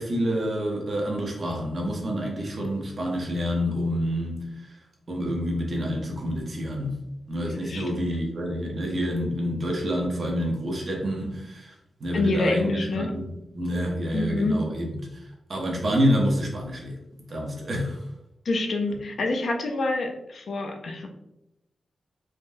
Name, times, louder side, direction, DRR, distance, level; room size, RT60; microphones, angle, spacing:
voice 1, 0.0-4.8 5.1-6.9 7.3-11.7 12.0-16.9 17.3-18.0, equal, 40° right, -1 dB, 0.7 m, -28 dB
voice 2, 7.5-8.1 12.1-13.1 14.1-14.6 18.5-21.1, left 2 dB, 55° left, 2 dB, 0.4 m, -27 dB
3.4 x 2.2 x 2.5 m, 0.88 s
wide cardioid pair, 180°, 0 cm